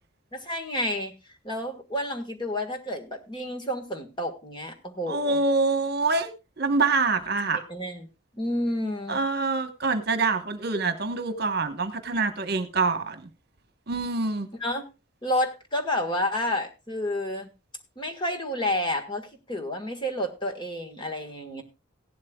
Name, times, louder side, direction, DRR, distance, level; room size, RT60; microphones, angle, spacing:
voice 1, 0.3-1.1 1.4-5.4 7.5-8.1 8.3-9.2 14.6-14.9 15.2-17.5 18.0-21.6, left 1 dB, 25° left, 3 dB, 1.6 m, -30 dB
voice 2, 5.1-6.3 6.6-7.6 9.1-13.3 13.9-14.5, right 3 dB, 50° right, 8 dB, 1.2 m, -25 dB
17.0 x 11.5 x 2.3 m, 0.28 s
head